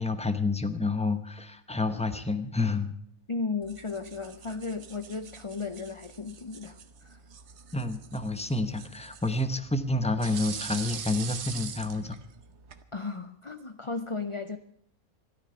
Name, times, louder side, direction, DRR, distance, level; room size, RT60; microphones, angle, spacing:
voice 1, 0.0-2.9 7.7-12.2, left 2 dB, 5° left, 10 dB, 0.6 m, -29 dB
voice 2, 3.3-7.2 12.9-14.6, left 4 dB, 45° left, 10 dB, 0.4 m, -35 dB
sound 1, 3.6-12.8, right 7 dB, 55° right, 1.2 m, -43 dB
13.5 x 12.5 x 6.9 m, 0.66 s
omnidirectional pair, 1.5 m